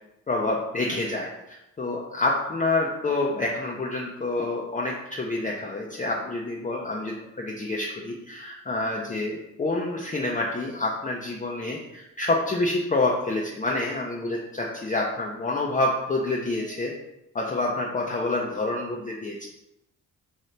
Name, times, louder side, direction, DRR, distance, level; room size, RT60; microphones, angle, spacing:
voice 1, 0.3-16.9 17.3-19.5, left 2 dB, 20° left, -2 dB, 0.5 m, -28 dB
2.7 x 2.7 x 3.2 m, 0.89 s
supercardioid pair, 50°, 37 cm